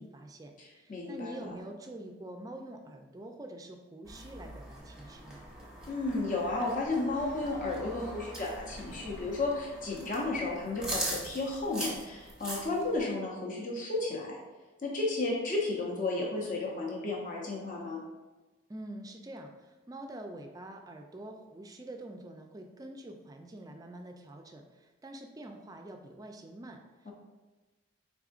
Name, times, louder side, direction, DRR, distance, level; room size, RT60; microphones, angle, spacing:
voice 1, 0.0-5.4 18.7-27.1, right 1 dB, 20° right, 4 dB, 0.3 m, -46 dB
voice 2, 0.6-1.4 5.9-14.4 14.8-18.0 27.1-27.2, left 2 dB, 40° left, -3 dB, 0.7 m, -33 dB
sound 1, 4.1-13.0, right 1 dB, 5° right, 0.8 m, -42 dB
4.8 x 3.5 x 2.4 m, 1.2 s
head